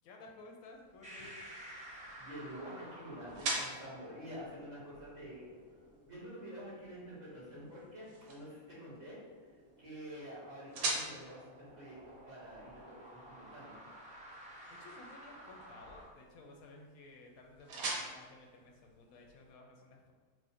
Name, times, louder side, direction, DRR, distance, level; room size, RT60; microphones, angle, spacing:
voice 1, 0.0-1.4 14.7-20.1, left 2 dB, 85° left, 1 dB, 1.1 m, -55 dB
sound 1, 0.7-19.5, right 2 dB, 80° right, 1.1 m, -46 dB
sound 2, 1.0-16.0, right 1 dB, 10° right, 0.5 m, -54 dB
voice 2, 2.1-5.4 6.0-9.2 9.8-11.4 11.7-12.9 13.3-13.8, equal, 35° right, -8 dB, 0.9 m, -48 dB
4.7 x 2.1 x 2.9 m, 1.4 s
omnidirectional pair, 1.5 m